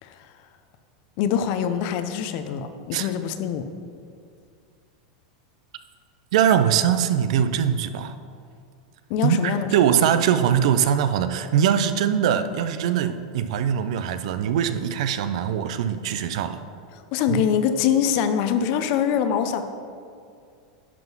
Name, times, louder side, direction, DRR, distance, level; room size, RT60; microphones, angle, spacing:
voice 1, 1.2-3.6 9.1-9.8 17.1-19.6, left 8 dB, 50° left, 9 dB, 0.7 m, -24 dB
voice 2, 6.3-8.2 9.2-16.6 17.3-17.4, right 9 dB, 70° right, 11 dB, 0.5 m, -22 dB
10.5 x 3.8 x 6.1 m, 2.3 s
supercardioid pair, 140°, 3 cm